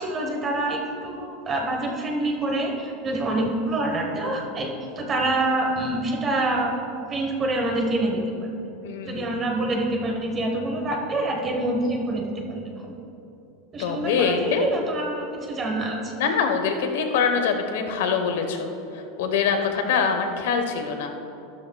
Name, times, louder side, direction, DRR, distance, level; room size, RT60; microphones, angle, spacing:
voice 1, 0.0-6.7 7.1-8.2 9.0-12.9 13.7-16.1, right 2 dB, 20° right, 1 dB, 1.1 m, -26 dB
voice 2, 8.8-9.2 13.8-14.7 16.2-18.7 18.9-21.1, left 6 dB, 75° left, 5 dB, 1.0 m, -24 dB
13.0 x 12.5 x 2.3 m, 2.9 s
supercardioid pair, 170°, 0 cm